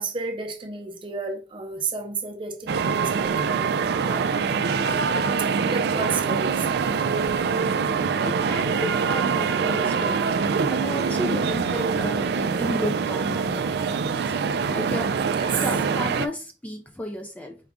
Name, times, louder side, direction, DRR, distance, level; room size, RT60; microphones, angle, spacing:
voice 1, 0.0-4.3 4.9-6.8 15.4-15.6, right 4 dB, 30° right, 0.7 m, -32 dB
sound 1, 2.7-16.3, right 5 dB, 60° right, 0.3 m, -24 dB
voice 2, 7.9-14.3 14.7-15.2 15.6-17.6, left 1 dB, 10° left, 0.4 m, -33 dB
4.7 x 2.4 x 3.5 m
head